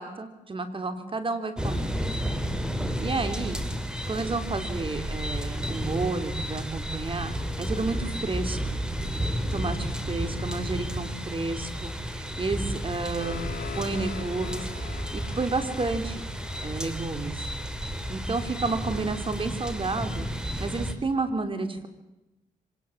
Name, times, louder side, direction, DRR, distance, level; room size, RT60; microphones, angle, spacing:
voice 1, 0.0-1.9 3.0-3.6 4.0-8.8 9.5-13.5 13.7-14.7 15.1-16.3 16.6-17.4 18.1-20.3 20.6-21.9, right 3 dB, 35° right, 9 dB, 3.2 m, -31 dB
sound 1, 1.6-20.9, equal, 5° right, 3.2 m, -32 dB
sound 2, 13.1-17.8, left 7 dB, 70° left, 2.8 m, -43 dB
25.5 x 18.5 x 7.3 m, 0.96 s
cardioid pair, 75°, 15 cm